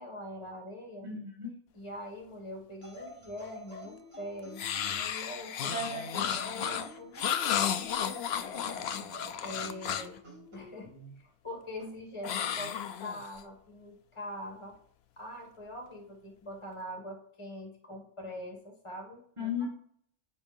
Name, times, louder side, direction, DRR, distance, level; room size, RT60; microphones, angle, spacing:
voice 1, 0.0-1.1 1.7-5.7 6.4-7.2 7.5-8.5 9.4-10.2 10.5-10.9 11.2-14.8 15.2-19.7, left 1 dB, 20° left, 0 dB, 2.1 m, -43 dB
voice 2, 1.0-1.5 5.7-6.4 10.9-11.1 19.4-19.7, left 3 dB, 20° right, -2 dB, 1.9 m, -36 dB
sound 1, 2.8-5.1 5.8-8.1 8.5-10.7 11.8-12.1, equal, 45° right, 3.2 m, -48 dB
sound 2, 4.6-10.2 12.2-13.4, left 9 dB, 60° left, 0.7 m, -33 dB
14.0 x 5.4 x 2.7 m, 0.63 s
omnidirectional pair, 1.5 m